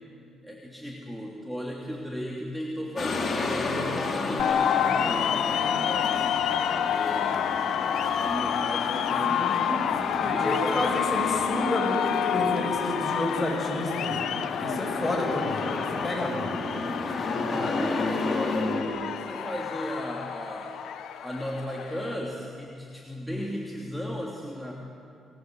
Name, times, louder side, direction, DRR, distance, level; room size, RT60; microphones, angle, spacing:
voice 1, 0.4-6.6 6.9-9.9 10.2-10.9 17.3-20.8 21.2-24.7, equal, ahead, -2 dB, 3.0 m, -36 dB
sound 1, 3.0-18.8, left 3 dB, 45° left, 4.2 m, -32 dB
sound 2, 4.4-22.2, left 9 dB, 75° left, 1.2 m, -29 dB
voice 2, 9.2-14.2 14.6-15.8 16.0-16.6, left 1 dB, 20° left, 0 dB, 7.7 m, -30 dB
28.0 x 19.5 x 8.0 m, 2.4 s
cardioid pair, 90°, 0 cm